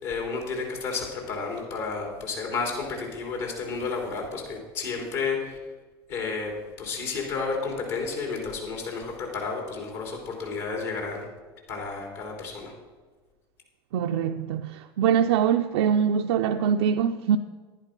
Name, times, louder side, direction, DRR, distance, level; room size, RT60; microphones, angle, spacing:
voice 1, 0.0-5.6 6.1-11.3 11.7-12.7, left 4 dB, 65° left, 3.6 m, -31 dB
voice 2, 13.9-17.4, right 8 dB, 75° right, 0.5 m, -23 dB
11.0 x 10.5 x 5.2 m
hypercardioid pair, 90°, 13 cm